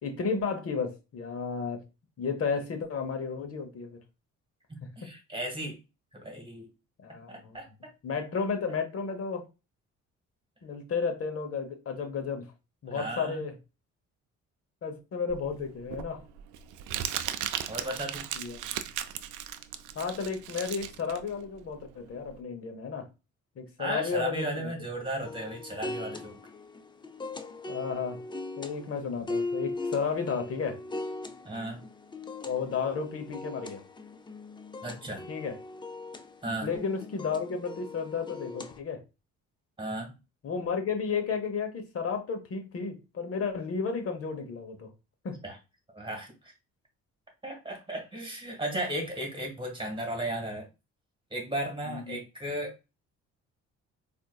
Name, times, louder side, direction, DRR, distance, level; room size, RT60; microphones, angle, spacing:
voice 1, 0.0-1.8 2.2-4.0 7.0-7.6 8.0-9.5 10.6-12.5 12.8-13.6 14.8-16.2 18.3-18.7 19.9-23.1 23.6-24.7 27.7-28.2 28.6-30.8 32.4-33.8 35.3-35.6 36.6-39.0 40.4-44.9 45.2-45.4 51.8-52.2, left 5 dB, 50° left, 0.9 m, -33 dB
voice 2, 5.0-5.8 6.2-6.7 7.3-7.9 12.9-13.4 17.7-18.2 23.8-26.4 31.4-31.8 34.8-35.3 36.4-36.7 39.8-40.1 45.4-45.6 45.9-46.5 47.4-50.7 51.3-52.7, right 1 dB, 15° right, 1.7 m, -35 dB
Crumpling crinkling, 15.3-22.4, right 11 dB, 85° right, 0.5 m, -36 dB
sound 1, 25.2-38.8, left 2 dB, 15° left, 0.4 m, -39 dB
4.3 x 2.6 x 2.3 m
cardioid pair, 90°, 30 cm